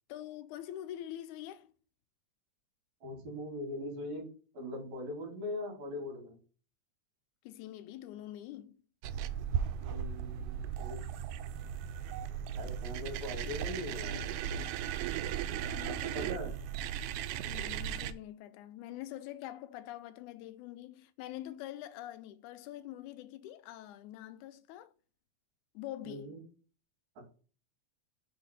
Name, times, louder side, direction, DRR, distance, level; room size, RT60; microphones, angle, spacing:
voice 1, 0.1-1.7 7.4-8.8 14.1-14.4 15.5-16.4 17.5-24.9 25.7-26.4, left 13 dB, 85° left, 2.0 m, -45 dB
voice 2, 3.0-4.3 4.5-6.4 9.8-11.0 12.5-14.2 15.8-16.5 26.0-26.4, left 1 dB, 70° right, 3.3 m, -41 dB
sound 1, 9.0-18.1, right 8 dB, 90° right, 2.0 m, -36 dB
6.0 x 3.5 x 5.5 m
omnidirectional pair, 3.4 m